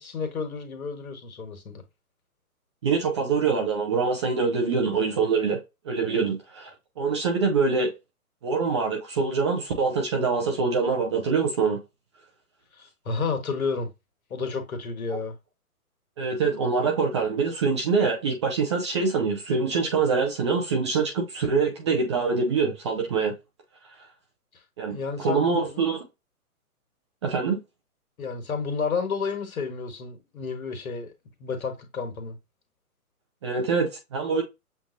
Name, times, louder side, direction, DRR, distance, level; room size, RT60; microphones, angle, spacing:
voice 1, 0.0-1.8 12.7-13.9 14.3-15.3 24.9-25.8 28.2-31.1 31.4-32.4, left 5 dB, 65° left, 1.6 m, -31 dB
voice 2, 2.8-5.6 5.8-7.9 8.4-11.8 15.1-15.2 16.2-23.3 24.8-26.0 27.2-27.6 33.4-34.4, right 4 dB, 20° right, 0.6 m, -24 dB
7.3 x 2.5 x 2.6 m
figure-of-eight pair, 135°, 45 cm